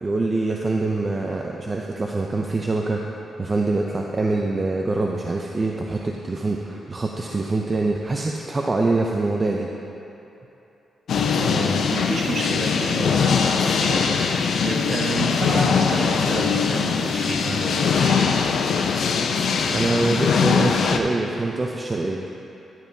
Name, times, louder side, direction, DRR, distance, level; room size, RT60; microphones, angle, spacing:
voice 1, 0.0-3.1 3.4-9.7 19.7-22.3, right 3 dB, 25° right, 0 dB, 0.4 m, -24 dB
sound 1, 11.1-21.0, left 6 dB, 65° left, 0.5 m, -21 dB
voice 2, 11.3-18.4, right 2 dB, 45° right, -1 dB, 1.1 m, -29 dB
11.5 x 8.7 x 2.7 m, 3.0 s
wide cardioid pair, 150°, 0 cm